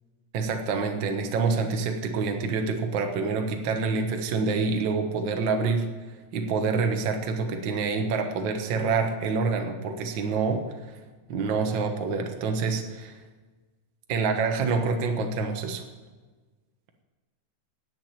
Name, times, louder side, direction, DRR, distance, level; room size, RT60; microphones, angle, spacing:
voice 1, 0.3-5.9 6.3-10.6 11.3-13.1 14.1-15.8, right 4 dB, 60° right, 5 dB, 1.3 m, -27 dB
10.5 x 8.5 x 8.4 m, 1.3 s
omnidirectional pair, 3.6 m